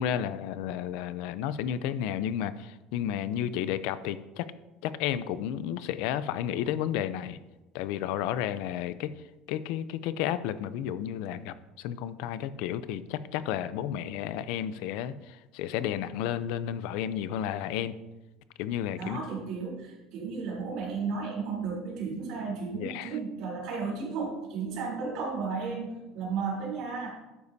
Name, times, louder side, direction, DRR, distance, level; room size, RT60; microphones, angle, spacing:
voice 1, 0.0-4.5 4.8-7.4 7.7-9.1 9.5-18.0 18.6-19.2 22.7-23.1, left 10 dB, 75° left, 14 dB, 0.5 m, -32 dB
voice 2, 19.0-27.1, right 5 dB, 60° right, -2 dB, 3.5 m, -34 dB
12.0 x 9.5 x 2.7 m, 1.0 s
cardioid pair, 160°, 0 cm